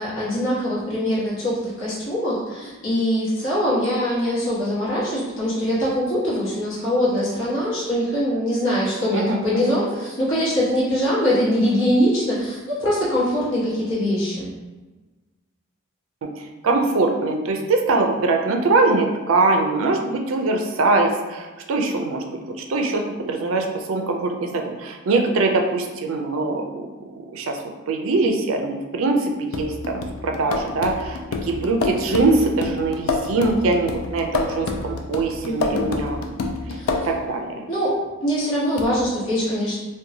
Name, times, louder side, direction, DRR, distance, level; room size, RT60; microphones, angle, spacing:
voice 1, 0.0-14.5 35.4-35.9 36.7-36.9 37.7-38.0 38.2-39.8, equal, 65° left, -8 dB, 1.1 m, -23 dB
voice 2, 9.1-9.8 16.2-26.9 27.1-27.6 27.9-36.2 37.0-37.6, right 3 dB, 70° right, 2 dB, 0.4 m, -22 dB
sound 1, 29.5-37.3 38.8-38.9, left 3 dB, 85° left, 0.3 m, -28 dB
2.7 x 2.2 x 2.6 m, 1.2 s
head